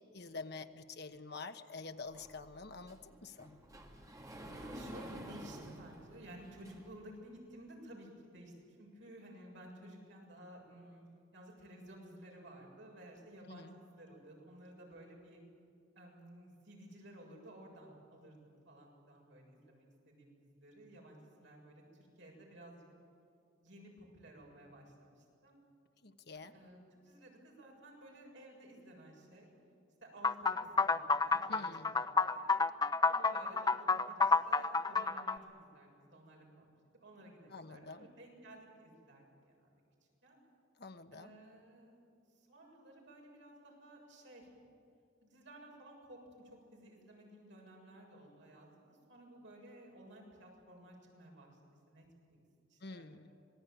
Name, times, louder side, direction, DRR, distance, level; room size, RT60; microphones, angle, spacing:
voice 1, 0.1-3.6 13.5-13.7 26.0-26.5 31.5-31.9 37.5-38.1 40.8-41.3 52.8-53.3, left 3 dB, 55° left, 8 dB, 1.2 m, -47 dB
Sliding door, 2.1-7.1, right 1 dB, 15° right, 2.3 m, -50 dB
voice 2, 4.3-11.0 11.3-15.4 16.0-22.8 23.6-25.6 26.3-29.5 30.0-31.9 32.3-32.6 33.1-36.7 37.0-39.7 40.2-40.4 41.1-42.0 42.4-44.5 45.2-51.5 51.9-52.4 52.7-53.1, right 1 dB, 65° right, -1 dB, 7.4 m, -55 dB
sound 1, 30.2-35.4, left 4 dB, 20° left, 0.6 m, -30 dB
26.5 x 19.5 x 9.2 m, 2.5 s
head